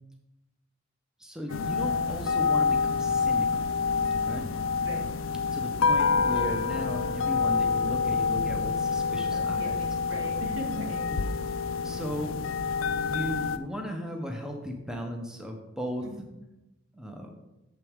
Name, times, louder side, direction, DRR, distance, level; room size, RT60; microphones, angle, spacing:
voice 1, 1.2-3.7 4.2-4.5 5.5-9.8 11.1-11.2 11.8-12.3 13.0-16.2 16.9-17.3, equal, 5° right, 2 dB, 0.8 m, -36 dB
sound 1, 1.5-13.6, left 5 dB, 85° left, 0.5 m, -27 dB
voice 2, 9.3-11.1 16.0-16.3, equal, 75° right, 0 dB, 1.9 m, -39 dB
9.1 x 7.4 x 3.6 m, 0.95 s
head